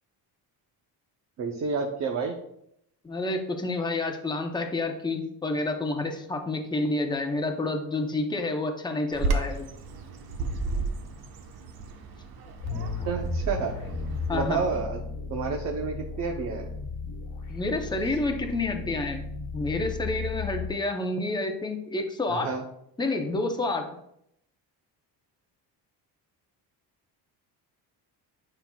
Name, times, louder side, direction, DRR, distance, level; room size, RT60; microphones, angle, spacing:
voice 1, 1.4-2.4 13.1-13.7 14.3-15.0 15.3-16.7 22.3-22.7, right 5 dB, 40° right, 2 dB, 0.7 m, -30 dB
voice 2, 3.0-9.7 14.3-14.6 17.5-19.2 19.5-22.5 23.0-23.8, left 2 dB, 10° left, 4 dB, 0.7 m, -29 dB
Bird vocalization bird call bird song, 9.1-14.8, right 3 dB, 60° right, 1.0 m, -33 dB
sound 1, 12.6-20.7, left 3 dB, 50° left, 1.2 m, -35 dB
9.3 x 5.9 x 2.3 m, 0.75 s
cardioid pair, 155°, 41 cm